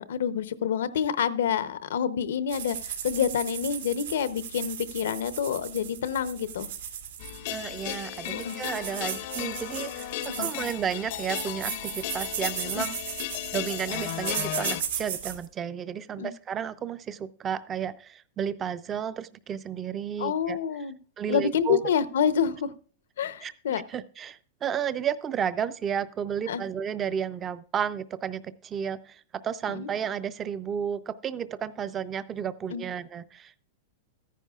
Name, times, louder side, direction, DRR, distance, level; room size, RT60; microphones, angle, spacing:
voice 1, 0.0-6.7 8.3-8.6 10.4-10.5 12.7-12.9 16.2-16.3 20.2-21.0 21.3-22.7 23.2-23.8 26.5-26.6 29.7-29.9 32.7-32.8, left 8 dB, 85° left, 14 dB, 0.7 m, -28 dB
sound 1, 2.5-15.5, right 9 dB, 90° right, 2.1 m, -36 dB
sound 2, 7.2-14.8, left 14 dB, 55° left, 0.5 m, -35 dB
voice 2, 7.5-13.0 13.5-20.6 21.2-21.8 23.4-23.5 23.9-33.6, right 8 dB, 20° right, 15 dB, 0.3 m, -32 dB
14.0 x 9.9 x 2.4 m, 0.40 s
supercardioid pair, 165°, 0 cm